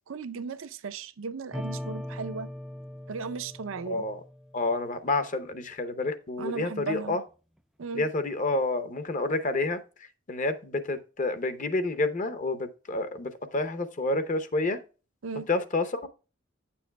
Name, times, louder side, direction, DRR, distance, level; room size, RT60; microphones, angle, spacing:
voice 1, 0.1-2.5 3.1-4.0 6.4-7.2 7.8-8.1 15.2-15.5, right 5 dB, 85° right, 0.5 m, -36 dB
sound 1, 1.5-5.0, equal, ahead, 0.3 m, -40 dB
voice 2, 3.9-4.2 4.5-7.2 7.9-9.8 10.3-14.8 15.5-16.1, left 2 dB, 40° left, 0.7 m, -29 dB
9.1 x 6.9 x 2.2 m
head